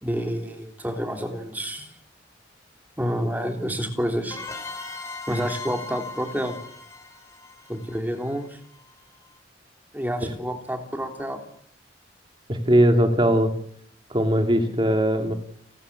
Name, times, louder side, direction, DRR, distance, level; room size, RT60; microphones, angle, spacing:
voice 1, 0.0-1.9 3.0-4.4 5.3-6.5 7.7-8.6 9.9-11.4, equal, 10° right, 4 dB, 3.3 m, -28 dB
sound 1, 4.3-8.8, left 3 dB, 15° left, 5.0 m, -38 dB
voice 2, 12.5-13.5 14.1-15.3, right 1 dB, 25° right, 6 dB, 2.6 m, -20 dB
29.5 x 13.0 x 8.6 m, 0.67 s
head